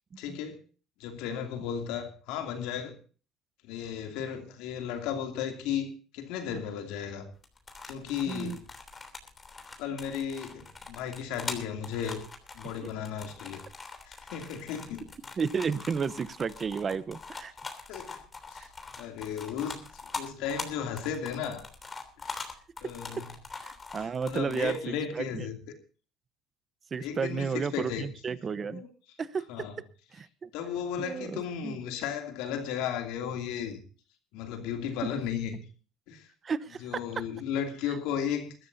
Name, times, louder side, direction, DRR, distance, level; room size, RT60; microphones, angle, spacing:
voice 1, 0.2-0.6 1.0-2.9 3.6-7.3 7.9-8.6 9.8-12.2 12.5-13.6 14.1-15.1 17.9-18.2 18.5-18.7 19.0-19.8 20.1-21.6 22.2-22.5 22.8-23.3 24.0-25.6 27.0-28.1 28.7-28.9 29.5-29.7 30.5-33.8 34.3-35.6 36.1-36.3 36.8-38.5, left 8 dB, 80° left, 2.7 m, -35 dB
sound 1, 7.3-24.8, left 4 dB, 25° left, 3.2 m, -43 dB
voice 2, 8.3-8.6 12.8-12.9 15.4-17.5 18.6-18.7 23.2-23.3 23.6-25.5 26.9-28.8 29.2-29.7 30.1-30.5 31.0-31.8 36.4-37.0, right 6 dB, 35° right, 0.9 m, -33 dB
22.0 x 13.0 x 2.7 m
supercardioid pair, 95°, 0 cm